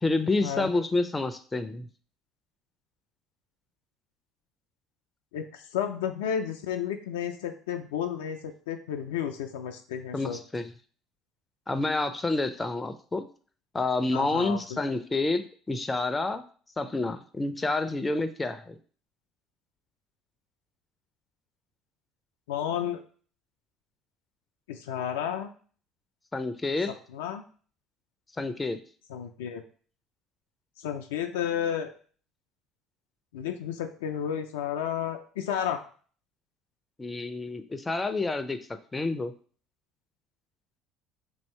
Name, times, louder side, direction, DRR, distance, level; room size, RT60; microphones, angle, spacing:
voice 1, 0.0-1.9 10.1-10.7 11.7-13.3 13.7-16.4 16.8-18.7 26.3-26.9 28.4-28.8 37.0-38.6 38.9-39.3, left 2 dB, 20° left, 9 dB, 0.5 m, -28 dB
voice 2, 5.3-10.4 14.1-14.6 22.5-23.0 24.7-25.5 26.9-27.4 29.1-29.6 30.8-31.9 33.3-35.8, left 9 dB, 80° left, 5 dB, 0.4 m, -32 dB
2.9 x 2.7 x 4.4 m, 0.43 s
hypercardioid pair, 65°, 0 cm